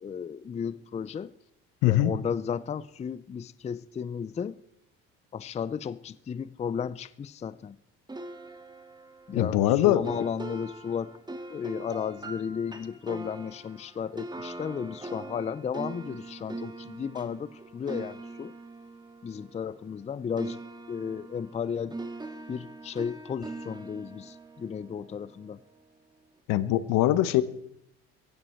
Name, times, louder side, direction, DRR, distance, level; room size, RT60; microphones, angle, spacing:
voice 1, 0.0-1.3 1.9-4.6 5.3-7.8 9.3-11.2 11.5-18.5 19.2-20.6 20.9-22.0 22.5-25.6, left 7 dB, 20° left, 0.4 m, -34 dB
voice 2, 1.8-2.1 9.3-10.0 26.5-27.4, left 14 dB, 75° left, 1.0 m, -22 dB
sound 1, 8.1-20.1 20.4-25.6, right 2 dB, 15° right, 1.6 m, -42 dB
16.0 x 16.0 x 4.5 m
supercardioid pair, 80°, 32 cm